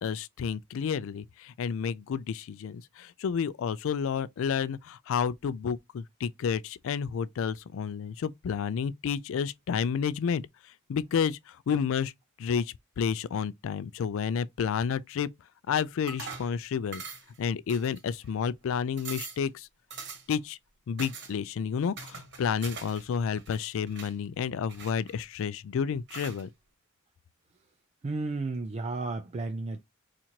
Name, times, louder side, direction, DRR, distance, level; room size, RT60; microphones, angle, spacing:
voice 1, 0.0-10.4 10.9-11.4 11.7-12.1 12.4-15.3 15.7-17.0 17.4-19.7 20.3-20.6 20.9-26.5, left 7 dB, 65° left, 0.3 m, -30 dB
sound 1, 16.1-16.5 16.9-17.4 17.7-18.3 18.7-18.8 19.0-19.5 19.9-20.4 21.0-21.3 22.0-23.0 23.3-24.1 24.7-25.4 26.1-26.4, right 5 dB, 55° right, 1.1 m, -42 dB
voice 2, 28.0-29.8, right 3 dB, 30° right, 0.4 m, -33 dB
4.3 x 2.5 x 2.8 m
head